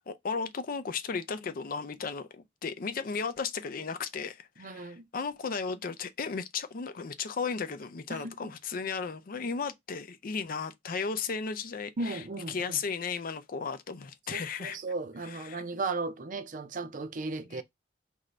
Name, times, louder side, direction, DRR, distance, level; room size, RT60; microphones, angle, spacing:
voice 1, 0.0-14.8 15.2-15.6 17.5-17.6, left 5 dB, 50° left, 0.5 m, -35 dB
voice 2, 4.6-5.0 8.1-8.3 12.0-12.8 14.3-17.6, right 3 dB, 45° right, 0.5 m, -36 dB
4.9 x 2.6 x 3.3 m
head